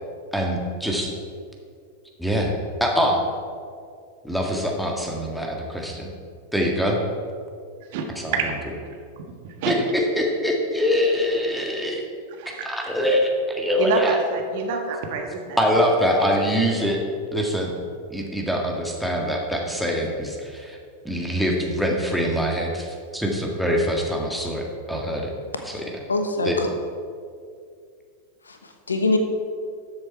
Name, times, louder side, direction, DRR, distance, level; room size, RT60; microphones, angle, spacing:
voice 1, 0.3-1.1 2.2-2.5 2.8-3.2 4.2-6.1 6.5-7.0 8.1-8.3 9.7-12.0 12.6-14.1 15.6-17.0 17.3-17.7 18.1-20.8 21.0-25.3 25.7-25.8 26.4-26.6, equal, ahead, -1 dB, 1.7 m, -24 dB
voice 2, 8.3-8.7 9.4-9.7 12.4-12.7 13.8-15.6 16.4-16.5, right 4 dB, 50° right, 3 dB, 1.5 m, -26 dB
voice 3, 26.1-26.7 28.5-29.2, left 2 dB, 75° left, 5 dB, 1.1 m, -24 dB
13.0 x 7.5 x 4.5 m, 2.2 s
figure-of-eight pair, 90°, 0 cm